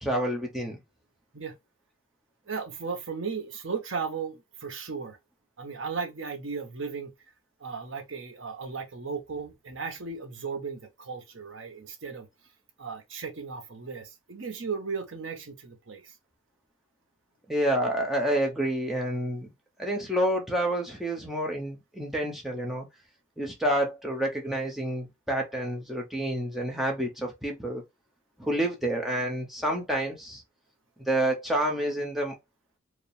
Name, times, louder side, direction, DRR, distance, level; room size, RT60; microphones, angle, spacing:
voice 1, 0.0-0.8 17.5-19.5 19.8-22.9 23.4-27.8 28.4-30.4 31.1-32.4, right 1 dB, ahead, 0.8 m, -28 dB
voice 2, 2.5-5.2 5.6-7.1 7.6-12.3 12.8-16.2, right 5 dB, 65° right, 0.8 m, -36 dB
4.7 x 2.2 x 3.3 m
head